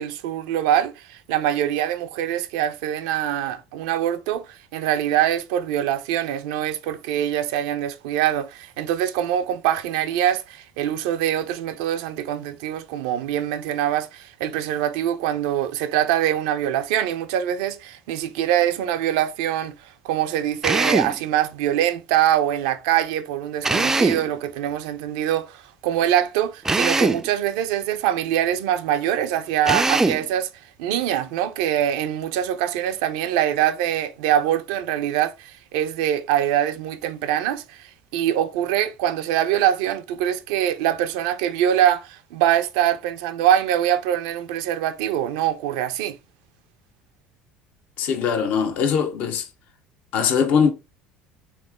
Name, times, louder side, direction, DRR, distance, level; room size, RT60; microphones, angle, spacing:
voice 1, 0.0-30.5 30.8-46.2, right 11 dB, 75° right, 0.5 m, -23 dB
Drill, 20.6-21.2 23.6-24.3 26.6-27.3 29.6-30.3, right 3 dB, 15° right, 0.4 m, -21 dB
voice 2, 48.0-49.4 50.1-50.7, left 6 dB, 60° left, 0.9 m, -21 dB
3.6 x 3.1 x 3.5 m
hypercardioid pair, 75°, 3 cm